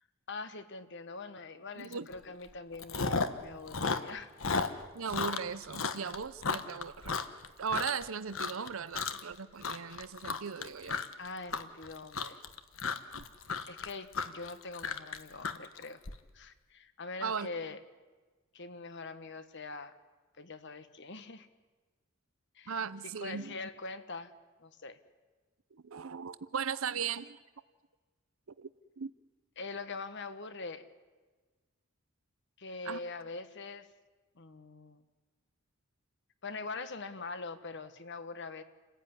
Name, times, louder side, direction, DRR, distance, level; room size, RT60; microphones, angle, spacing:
voice 1, 0.3-4.3 11.2-12.4 13.7-16.0 16.3-17.8 18.5-20.0 20.4-21.5 22.5-22.8 23.2-24.3 24.6-25.0 29.6-30.9 32.6-33.9 34.3-35.0 36.4-38.6, left 3 dB, 60° left, 11 dB, 1.5 m, -43 dB
voice 2, 1.8-2.1 4.9-7.2 7.6-11.0 13.1-13.2 17.2-17.5 22.7-23.6 25.7-27.4 28.6-28.7 29.0-29.1 32.8-33.0, right 6 dB, 75° right, 14 dB, 0.7 m, -37 dB
Chewing mastication, 1.9-2.1 2.4-3.4 3.7-8.0 8.3-8.7 8.9-9.3 9.6-16.1, left 4 dB, 75° left, 1.4 m, -34 dB
29.5 x 15.5 x 9.9 m, 1.3 s
head